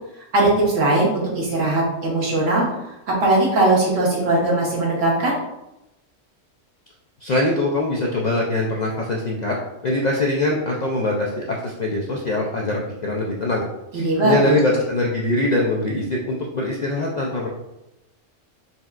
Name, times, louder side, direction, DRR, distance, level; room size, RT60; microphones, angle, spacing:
voice 1, 0.3-2.7 3.1-5.4 13.9-14.6, right 2 dB, 80° right, -4 dB, 1.5 m, -19 dB
voice 2, 7.2-9.6 9.8-13.6 13.9-17.5, left 2 dB, 65° left, -2 dB, 0.4 m, -23 dB
4.2 x 3.4 x 2.4 m, 0.92 s
omnidirectional pair, 1.3 m